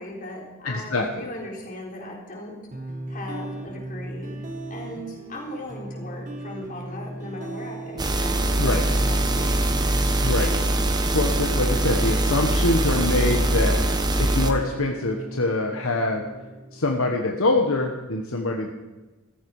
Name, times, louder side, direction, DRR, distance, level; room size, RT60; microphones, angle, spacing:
voice 1, 0.0-2.6 3.1-4.3 4.7-8.7 9.0-9.7, left 1 dB, 40° left, -1 dB, 4.0 m, -38 dB
voice 2, 0.6-1.3 8.6-8.8 10.2-10.5 11.1-13.8 14.2-16.2 16.7-18.7, left 2 dB, 65° left, 2 dB, 1.3 m, -24 dB
sound 1, 2.7-17.7, right 2 dB, 35° right, 1.9 m, -37 dB
sound 2, 8.0-14.5, right 1 dB, 20° right, 1.2 m, -22 dB
14.5 x 14.5 x 4.8 m, 1.1 s
head